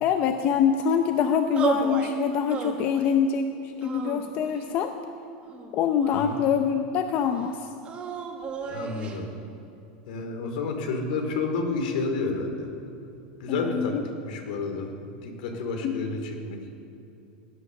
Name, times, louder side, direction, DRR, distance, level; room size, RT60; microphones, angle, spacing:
voice 1, 0.0-4.9 5.7-7.7 13.5-14.0 15.8-16.1, left 7 dB, 35° left, 7 dB, 0.7 m, -25 dB
sound 1, 1.6-2.1 2.5-3.2 3.8-4.7 5.5-6.5 7.8-9.2, right 5 dB, 25° right, 1.5 m, -33 dB
voice 2, 8.7-9.3 10.1-12.7 13.4-14.0 14.2-14.9 15.2-16.6, left 3 dB, 70° left, 4 dB, 2.8 m, -30 dB
17.5 x 9.6 x 6.5 m, 2.7 s
supercardioid pair, 155°, 5 cm